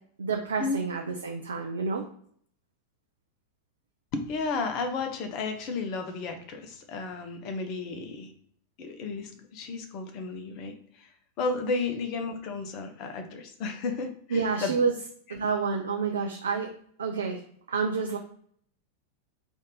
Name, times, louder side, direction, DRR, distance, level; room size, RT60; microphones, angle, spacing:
voice 1, 0.2-2.1 14.3-14.9 15.3-16.7 17.0-17.4 17.7-18.2, right 5 dB, 70° right, 4 dB, 0.4 m, -28 dB
voice 2, 4.1-8.3 8.8-11.1 11.4-14.7, left 4 dB, 40° left, 6 dB, 0.7 m, -33 dB
3.4 x 2.6 x 3.9 m, 0.63 s
figure-of-eight pair, 90°, 0 cm